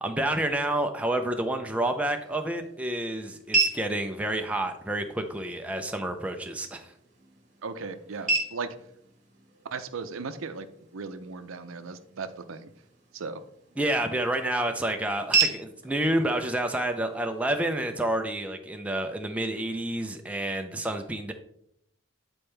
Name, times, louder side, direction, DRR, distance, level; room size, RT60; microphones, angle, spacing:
voice 1, 0.0-6.9 13.8-21.3, right 1 dB, 5° right, 4 dB, 0.4 m, -29 dB
sound 1, 1.8-17.8, right 4 dB, 35° right, 1.6 m, -35 dB
voice 2, 7.6-8.8 9.7-10.7 10.9-12.7 13.1-13.4, right 4 dB, 75° right, 10 dB, 0.6 m, -37 dB
8.8 x 4.3 x 3.3 m, 0.73 s
head